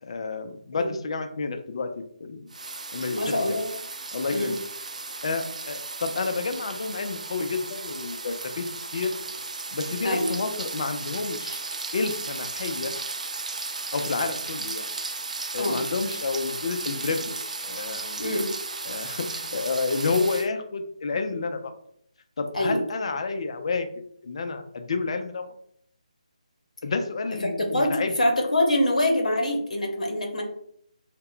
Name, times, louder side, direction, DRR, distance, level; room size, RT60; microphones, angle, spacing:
voice 1, 0.0-2.5 2.9-3.6 4.1-4.6 5.2-8.7 8.9-9.1 9.7-11.6 11.9-12.9 13.9-14.9 15.5-17.3 17.6-18.3 18.8-21.7 22.4-23.9 24.2-25.5 26.8-28.1, left 4 dB, 50° left, 7 dB, 0.4 m, -30 dB
sound 1, 2.5-20.5, right 3 dB, 75° right, 0.3 m, -35 dB
voice 2, 3.1-3.7 4.3-4.5 10.0-10.3 15.6-15.8 18.2-18.5 22.5-22.8 27.4-30.4, left 1 dB, 75° left, 1 dB, 0.7 m, -24 dB
2.1 x 2.1 x 3.7 m, 0.68 s
figure-of-eight pair, 160°, 4 cm